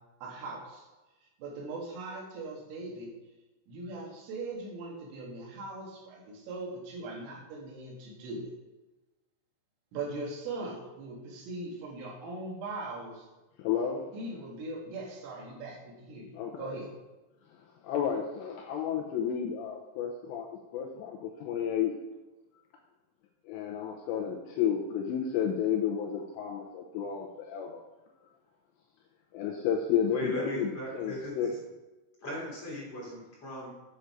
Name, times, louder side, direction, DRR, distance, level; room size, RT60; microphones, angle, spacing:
voice 1, 0.2-0.9 1.4-3.1 3.7-8.5 9.9-13.3 14.1-16.9, right 2 dB, 80° right, -2 dB, 4.4 m, -40 dB
voice 2, 13.6-14.0 16.4-16.8 17.8-20.5 20.7-21.9 23.5-27.8 29.3-31.5, left 8 dB, 85° left, 1 dB, 2.6 m, -31 dB
voice 3, 30.1-31.6 32.2-33.7, equal, 35° left, -6 dB, 2.8 m, -38 dB
8.8 x 6.7 x 4.8 m, 1.1 s
omnidirectional pair, 5.7 m